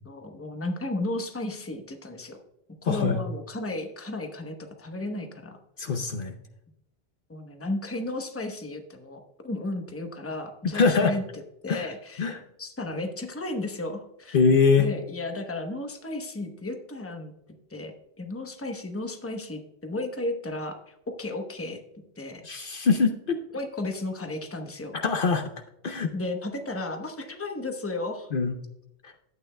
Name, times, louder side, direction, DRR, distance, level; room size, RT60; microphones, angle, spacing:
voice 1, 0.0-2.4 2.8-5.6 7.3-14.4 14.8-17.3 17.7-21.8 22.2-22.4 23.5-24.9 26.1-28.3, left 2 dB, 15° left, 4 dB, 0.9 m, -34 dB
voice 2, 2.9-3.2 5.8-6.3 10.7-11.1 11.7-11.9 12.2-12.4 14.3-14.8 22.4-23.4 25.0-25.5 25.8-26.1 28.3-28.5 29.0-29.1, left 5 dB, 60° left, 6 dB, 0.8 m, -23 dB
12.0 x 8.7 x 2.2 m, 0.83 s
omnidirectional pair, 1.1 m